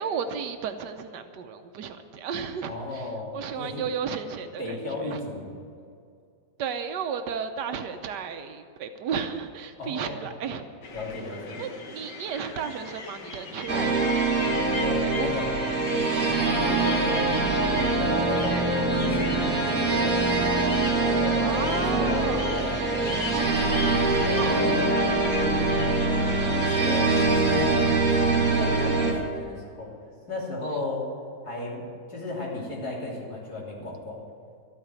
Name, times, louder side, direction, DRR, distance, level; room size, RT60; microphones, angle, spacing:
voice 1, 0.0-2.7 3.3-4.6 5.1-5.2 6.6-10.6 11.6-14.0 15.0-15.3 21.4-22.5 24.3-24.9, right 7 dB, 85° right, 8 dB, 1.4 m, -33 dB
voice 2, 2.7-3.9 4.6-5.5 9.8-10.3 10.9-11.6 14.8-15.6 15.9-18.6 18.9-20.6 20.9-23.5 24.0-24.9 25.3-26.1 26.5-28.0 28.5-29.9 30.3-31.1 31.4-34.2, left 2 dB, 65° left, -4 dB, 3.8 m, -34 dB
sound 1, 10.8-27.3, left 3 dB, 85° left, 1.9 m, -39 dB
sound 2, 13.7-29.1, right 3 dB, 55° right, 2.4 m, -24 dB
13.0 x 9.0 x 9.0 m, 2.3 s
omnidirectional pair, 1.8 m